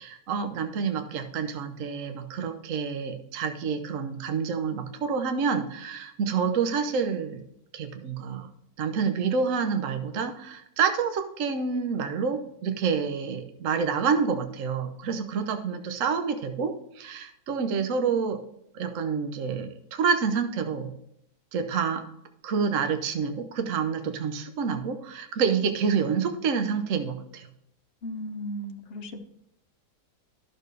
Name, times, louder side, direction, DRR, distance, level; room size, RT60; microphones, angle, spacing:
voice 1, 0.0-7.4 7.7-8.5 8.8-18.4 18.7-20.9 21.5-22.1 22.4-27.5, right 6 dB, 55° right, 7 dB, 1.1 m, -28 dB
voice 2, 28.0-29.2, equal, 45° left, 4 dB, 1.0 m, -36 dB
11.5 x 6.7 x 3.2 m, 0.76 s
omnidirectional pair, 1.8 m